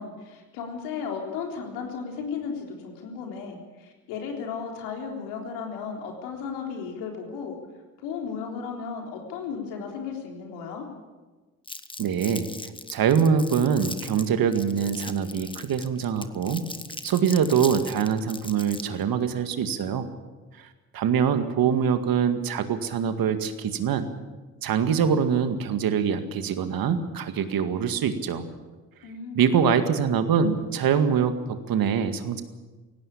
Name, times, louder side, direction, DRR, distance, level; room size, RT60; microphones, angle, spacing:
voice 1, 0.0-7.6 8.0-10.8 29.0-29.7, left 6 dB, 80° left, 2 dB, 3.9 m, -35 dB
Crumpling crinkling, 11.7-19.0, left 2 dB, 10° left, 1.5 m, -39 dB
voice 2, 12.0-12.5 12.9-16.6 17.0-20.1 20.6-20.7 20.9-24.1 24.6-28.5 29.4-32.4, right 7 dB, 60° right, 9 dB, 2.0 m, -24 dB
17.5 x 17.0 x 8.7 m, 1.3 s
hypercardioid pair, 55°, 40 cm